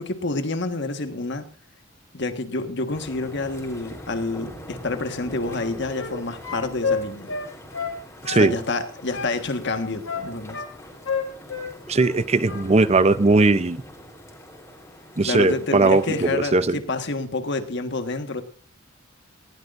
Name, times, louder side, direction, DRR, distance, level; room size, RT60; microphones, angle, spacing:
voice 1, 0.0-1.4 2.1-7.3 8.3-10.6 15.2-18.4, left 3 dB, 60° left, 7 dB, 1.6 m, -28 dB
sound 1, 2.9-16.3, equal, 15° left, 3.7 m, -43 dB
sound 2, 5.5-6.2 6.4-8.0 8.2-9.4 9.6-10.7 11.1-12.2 12.4-12.7, left 5 dB, 85° left, 2.5 m, -30 dB
voice 2, 8.2-8.5 11.9-13.8 15.2-16.8, right 3 dB, 35° right, 13 dB, 0.6 m, -19 dB
19.5 x 16.0 x 2.6 m, 0.39 s
head